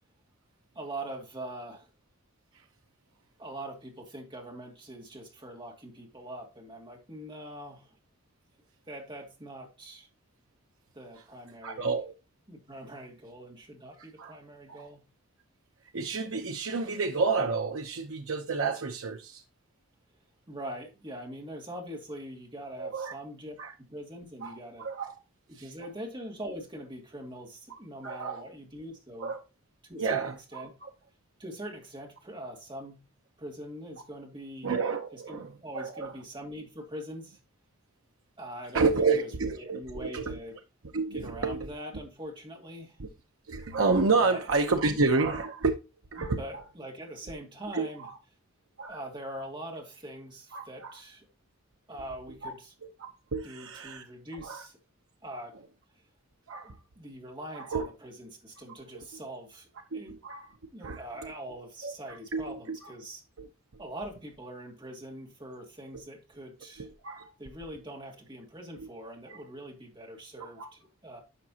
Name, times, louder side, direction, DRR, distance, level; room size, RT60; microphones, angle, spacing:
voice 1, 0.7-1.9 3.4-8.0 8.9-10.1 10.9-11.9 12.5-15.0 20.5-24.9 25.5-29.3 29.9-30.7 31.4-33.0 33.4-34.7 35.1-37.4 38.4-40.6 41.1-43.0 44.2-44.4 44.8-45.0 46.2-48.1 48.9-51.3 51.9-52.7 53.4-54.8 55.2-55.5 56.5-59.7 59.9-60.2 60.7-63.2 63.8-66.9 67.4-71.2, right 1 dB, 20° right, 2.4 m, -43 dB
voice 2, 11.6-12.1 14.2-14.3 14.7-14.9 15.9-19.4 22.8-23.2 23.6-23.7 24.4-25.1 25.6-25.7 27.7-27.8 28.0-28.5 29.2-29.4 30.0-30.9 34.6-36.1 38.7-40.4 40.9-41.7 43.0-43.1 43.5-45.7 46.1-46.6 47.7-48.1 48.8-49.0 50.5-51.0 52.4-52.5 53.0-54.1 54.4-54.7 56.5-56.7 57.5-57.9 59.9-60.5 60.8-61.3 61.8-62.9 63.4-63.5 66.8-67.3 68.8-68.9 69.3-69.4 70.4-70.7, right 4 dB, 70° right, 0.8 m, -30 dB
11.0 x 6.0 x 2.8 m
head